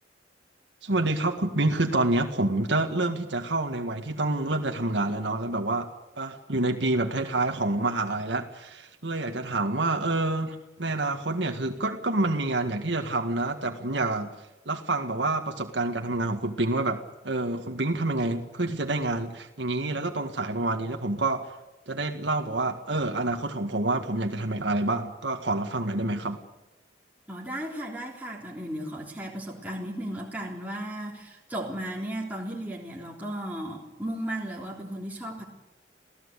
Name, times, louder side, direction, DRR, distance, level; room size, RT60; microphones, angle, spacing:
voice 1, 0.8-5.9 6.2-14.3 14.7-21.5 21.9-26.4, right 2 dB, 65° right, 4 dB, 2.0 m, -27 dB
voice 2, 27.3-35.4, right 1 dB, 10° right, -3 dB, 3.6 m, -35 dB
28.0 x 16.5 x 8.5 m, 1.0 s
head